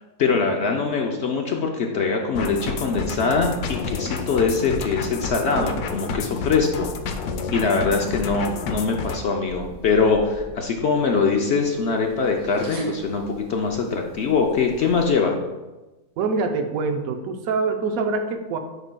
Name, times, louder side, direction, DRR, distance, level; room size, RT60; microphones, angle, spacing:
voice 1, 0.2-6.9 7.5-15.4, left 4 dB, 65° left, 2 dB, 0.7 m, -22 dB
sound 1, 2.3-9.2, left 4 dB, 80° left, 1.1 m, -30 dB
sound 2, 9.4-15.1, right 2 dB, 85° right, 2.2 m, -40 dB
voice 2, 16.2-18.6, right 4 dB, 70° right, 6 dB, 1.0 m, -25 dB
9.9 x 5.0 x 2.2 m, 1.1 s
omnidirectional pair, 1.6 m